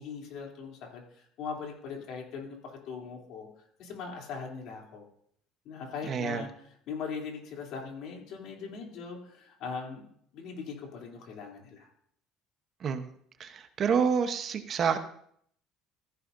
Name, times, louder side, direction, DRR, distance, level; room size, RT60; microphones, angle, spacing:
voice 1, 0.0-3.5 3.8-5.1 5.6-6.5 6.9-10.0 10.3-11.9, left 5 dB, 65° left, 0 dB, 3.0 m, -40 dB
voice 2, 6.1-6.5 12.8-13.1 13.4-15.0, right 6 dB, 40° right, 8 dB, 0.9 m, -28 dB
14.0 x 10.5 x 2.6 m, 0.67 s
cardioid pair, 130°, 0 cm